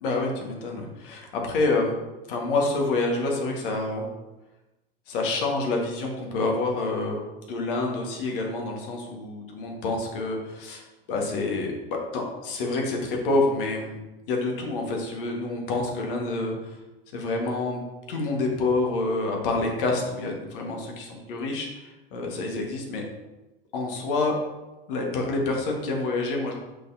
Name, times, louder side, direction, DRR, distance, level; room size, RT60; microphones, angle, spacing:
voice 1, 0.0-2.0 2.3-4.1 5.1-7.2 7.5-10.8 11.1-14.0 14.3-16.8 17.1-17.8 18.1-23.0 23.7-24.3 24.9-26.5, left 2 dB, 65° left, 0 dB, 1.7 m, -27 dB
6.4 x 5.8 x 2.8 m, 1.0 s
figure-of-eight pair, 85°, 29 cm